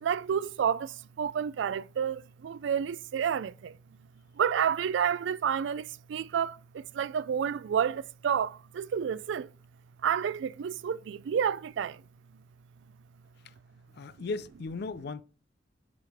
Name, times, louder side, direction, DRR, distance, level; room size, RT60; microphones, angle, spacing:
voice 1, 0.0-3.8 4.4-9.5 10.0-12.0, right 8 dB, 75° right, 0.3 m, -30 dB
voice 2, 13.9-15.2, left 3 dB, 60° left, 0.4 m, -36 dB
7.8 x 4.9 x 3.5 m
head